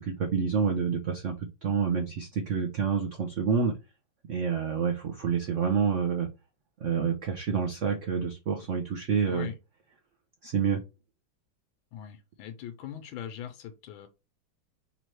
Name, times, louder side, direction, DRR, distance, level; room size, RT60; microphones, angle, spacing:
voice 1, 0.2-3.7 4.3-6.3 6.8-9.5 10.4-10.8, right 6 dB, 75° right, 0.7 m, -28 dB
voice 2, 11.9-14.1, left 10 dB, 90° left, 1.4 m, -40 dB
4.0 x 3.1 x 4.4 m
omnidirectional pair, 2.1 m